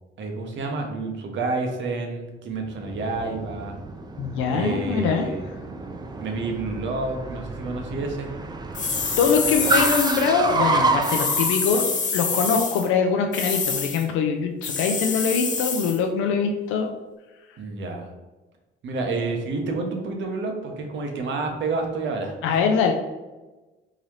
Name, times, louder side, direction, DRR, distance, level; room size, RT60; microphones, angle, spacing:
voice 1, 0.2-3.8 4.5-5.4 6.2-8.3 17.6-18.1 18.8-22.6, right 3 dB, 70° right, 3 dB, 0.8 m, -29 dB
Car, 2.6-11.6, right 3 dB, 20° right, 0.4 m, -29 dB
voice 2, 4.2-5.3 9.2-11.9 12.1-16.9 22.4-22.9, left 5 dB, 90° left, 4 dB, 0.4 m, -23 dB
sound 1, 8.7-10.3 11.0-12.9 13.3-14.0 14.6-16.0, left 5 dB, 40° left, 0.6 m, -26 dB
3.8 x 2.7 x 3.1 m, 1.1 s
cardioid pair, 90°, 20 cm